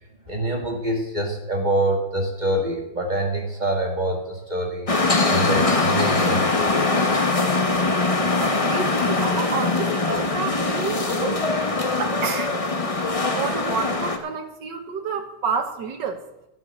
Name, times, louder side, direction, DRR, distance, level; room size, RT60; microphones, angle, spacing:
voice 1, 0.3-4.9 5.3-6.8, right 1 dB, 20° right, 1 dB, 1.9 m, -25 dB
sound 1, 4.9-14.2, left 3 dB, 30° left, 0.6 m, -22 dB
voice 2, 7.8-12.9 13.3-16.2, right 5 dB, 60° right, 5 dB, 2.0 m, -30 dB
14.0 x 7.7 x 6.5 m, 0.87 s
omnidirectional pair, 2.3 m